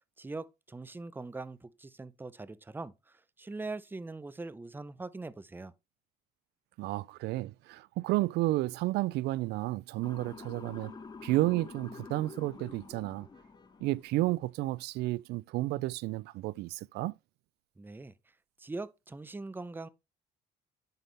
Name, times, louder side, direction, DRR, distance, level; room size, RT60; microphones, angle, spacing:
voice 1, 0.2-5.7 17.8-18.1 18.6-19.9, right 3 dB, 10° right, 0.6 m, -42 dB
voice 2, 6.8-10.9 11.2-13.3 13.8-17.2, right 18 dB, 80° right, 0.4 m, -31 dB
Motor vehicle (road) / Siren, 10.0-14.2, left 4 dB, 25° left, 1.3 m, -48 dB
9.4 x 5.7 x 3.3 m
cardioid pair, 110°, 17 cm